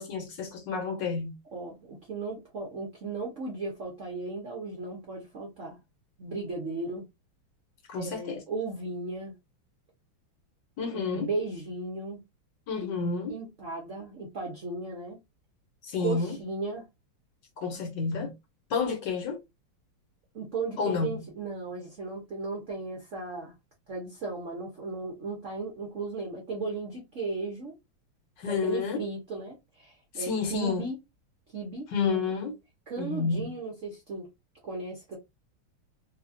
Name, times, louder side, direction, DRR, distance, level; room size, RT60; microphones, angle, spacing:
voice 1, 0.0-1.3 7.9-8.4 10.8-11.3 12.7-13.4 15.8-16.4 17.6-18.3 18.7-19.4 20.8-21.2 28.4-29.0 30.1-30.8 31.9-32.6 33.0-33.5, left 5 dB, 65° left, 1.3 m, -30 dB
voice 2, 1.5-5.8 6.2-7.0 8.0-9.3 10.9-12.2 13.3-15.2 16.0-16.9 20.3-23.5 23.9-27.7 28.5-31.0 31.5-31.9 32.9-34.3 34.6-35.2, right 3 dB, 60° right, 0.8 m, -36 dB
3.2 x 2.2 x 2.5 m
omnidirectional pair, 2.3 m